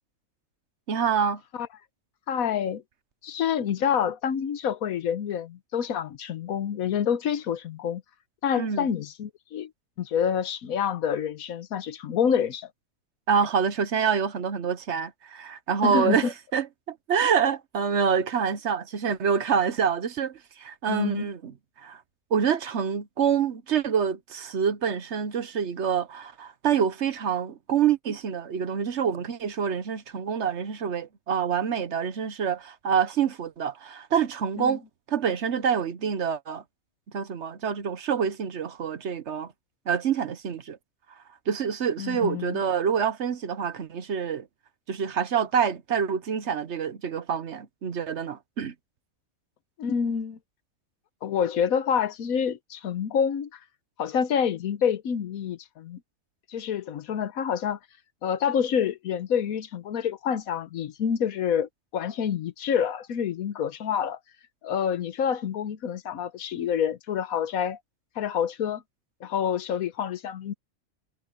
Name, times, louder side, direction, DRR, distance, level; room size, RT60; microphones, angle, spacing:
voice 1, 0.9-1.4 8.6-8.9 13.3-21.5 21.8-22.0 22.3-34.8 35.1-36.6 37.1-39.5 39.9-40.8 41.5-44.5 44.9-48.7, right 7 dB, 55° right, 1.1 m, -26 dB
voice 2, 2.3-2.8 3.2-8.0 8.4-9.7 10.0-12.7 15.8-16.3 20.9-21.3 34.6-34.8 42.0-42.6 49.8-50.4 51.2-53.6 54.0-56.0 56.5-57.8 58.2-64.2 64.6-67.8 68.2-68.8 69.2-70.5, left 8 dB, 85° left, 1.3 m, -27 dB
omnidirectional pair, 1.4 m